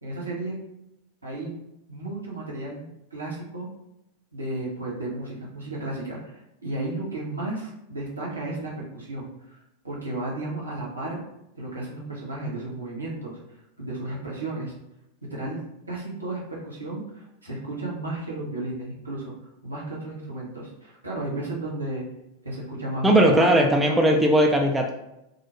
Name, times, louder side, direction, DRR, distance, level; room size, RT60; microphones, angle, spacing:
voice 1, 0.0-0.6 1.2-1.5 1.9-3.7 4.3-9.6 9.8-11.2 11.5-13.4 13.8-14.7 15.3-19.3 19.6-22.0 22.4-24.2, right 2 dB, 80° right, -4 dB, 0.8 m, -33 dB
voice 2, 23.0-24.9, right 1 dB, 10° right, 1 dB, 0.3 m, -18 dB
2.5 x 2.0 x 3.0 m, 0.87 s
figure-of-eight pair, 90°, 0 cm